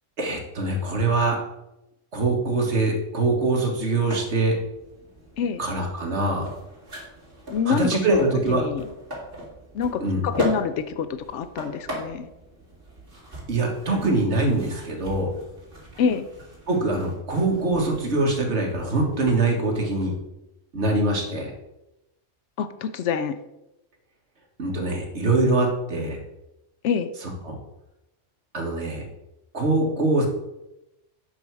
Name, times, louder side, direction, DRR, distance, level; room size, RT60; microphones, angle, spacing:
voice 1, 0.2-1.4 2.1-4.6 5.6-6.5 7.7-8.6 10.0-10.2 13.5-15.3 16.7-20.1 20.7-21.5 24.6-26.2 27.2-27.6 28.5-29.0 29.5-30.3, right 2 dB, 60° right, 1 dB, 1.9 m, -23 dB
sound 1, 4.1-20.1, equal, 45° right, 2.7 m, -38 dB
voice 2, 7.5-8.9 9.7-11.1 11.3-12.3 16.0-16.3 22.6-23.4 26.8-27.1, left 6 dB, 70° left, 11 dB, 0.9 m, -26 dB
8.5 x 5.6 x 4.7 m, 0.93 s
omnidirectional pair, 1.3 m